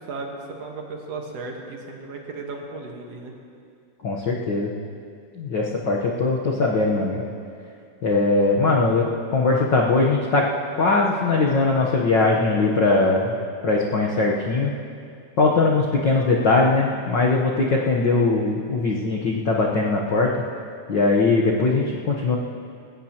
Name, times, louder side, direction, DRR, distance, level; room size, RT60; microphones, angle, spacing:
voice 1, 0.1-3.3, right 3 dB, 60° right, 0 dB, 2.3 m, -35 dB
voice 2, 4.0-4.7 5.4-7.2 8.0-9.0 9.3-10.5 10.8-13.3 13.6-14.7 15.4-20.3 20.9-22.4, left 3 dB, 65° left, -3 dB, 1.1 m, -20 dB
21.5 x 17.5 x 2.9 m, 2.4 s
omnidirectional pair, 3.6 m